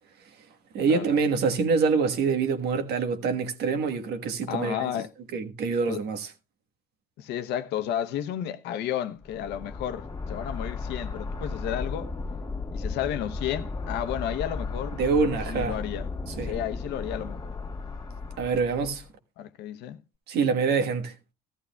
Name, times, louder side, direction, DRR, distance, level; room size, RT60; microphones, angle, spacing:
voice 1, 0.7-4.9 5.3-6.3 15.0-15.7 16.4-16.5 18.4-19.0 20.3-21.1, right 5 dB, 75° right, 1.4 m, -25 dB
voice 2, 4.5-5.1 5.9-6.0 7.2-12.1 12.7-15.0 15.5-16.1 16.4-17.4 19.4-20.0, left 10 dB, 85° left, 0.8 m, -32 dB
sound 1, 9.2-19.1, left 3 dB, 25° left, 1.9 m, -35 dB
14.0 x 14.0 x 2.3 m
cardioid pair, 110°, 17 cm